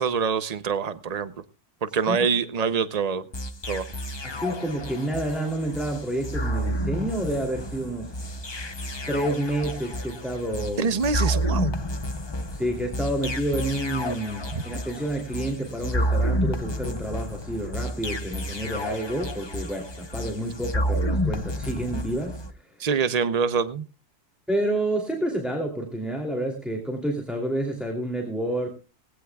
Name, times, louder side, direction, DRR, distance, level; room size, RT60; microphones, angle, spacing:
voice 1, 0.0-1.3 1.8-3.2 3.7-3.8 10.8-11.7 22.8-23.9, right 6 dB, 55° right, 12 dB, 0.4 m, -25 dB
sound 1, 3.3-22.5, equal, 25° left, 0.5 m, -30 dB
voice 2, 4.2-8.2 9.1-11.0 12.5-22.9 24.5-28.7, right 1 dB, ahead, 2 dB, 2.7 m, -29 dB
20.0 x 16.5 x 2.3 m, 0.33 s
omnidirectional pair, 1.7 m